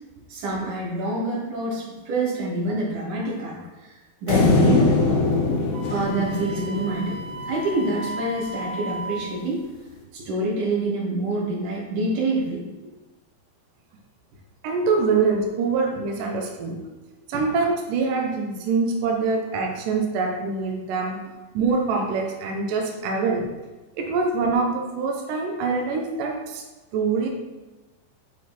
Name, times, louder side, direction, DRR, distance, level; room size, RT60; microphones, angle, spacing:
voice 1, 0.3-3.9 4.2-5.0 5.4-5.6 5.9-7.2 7.5-9.7 10.1-12.6 15.1-15.2, right 2 dB, 50° right, -5 dB, 3.4 m, -26 dB
sound 1, 4.3-7.7, left 3 dB, 85° left, 3.8 m, -22 dB
Wind instrument woodwind instrument, 5.7-9.3, right 1 dB, 70° right, 2.5 m, -35 dB
voice 2, 14.6-16.8 17.3-21.2 21.5-23.5 23.9-26.6 26.9-27.3, right 4 dB, 90° right, 1 dB, 1.8 m, -24 dB
10.0 x 5.3 x 4.3 m, 1.2 s
omnidirectional pair, 5.4 m